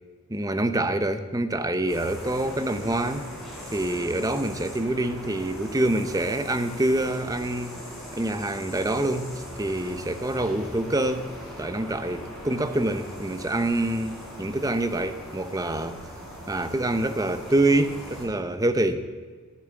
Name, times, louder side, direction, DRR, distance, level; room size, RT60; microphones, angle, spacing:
voice 1, 0.3-3.3 3.7-7.8 8.1-11.3 11.6-16.0 16.5-19.0, right 1 dB, 15° right, 9 dB, 0.8 m, -26 dB
sound 1, 1.9-18.2, equal, ahead, 4.7 m, -40 dB
15.0 x 11.0 x 7.2 m, 1.5 s
head